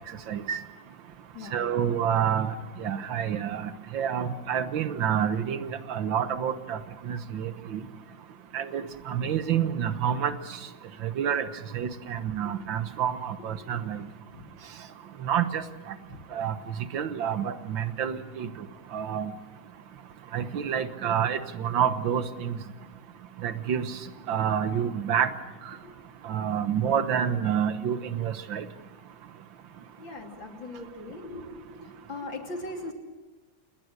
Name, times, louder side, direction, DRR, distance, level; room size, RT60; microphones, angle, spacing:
voice 1, 0.3-0.6 1.5-2.5 2.8-6.8 7.0-7.8 8.5-10.3 11.0-11.5 11.7-14.1 15.2-15.6 16.3-18.5 18.9-19.3 20.3-22.6 23.4-24.0 24.3-25.3 26.2-28.7, right 8 dB, 85° right, 11 dB, 1.9 m, -28 dB
voice 2, 30.0-32.9, left 2 dB, 90° left, 2 dB, 3.7 m, -40 dB
28.0 x 20.0 x 6.6 m, 1.2 s
omnidirectional pair, 2.0 m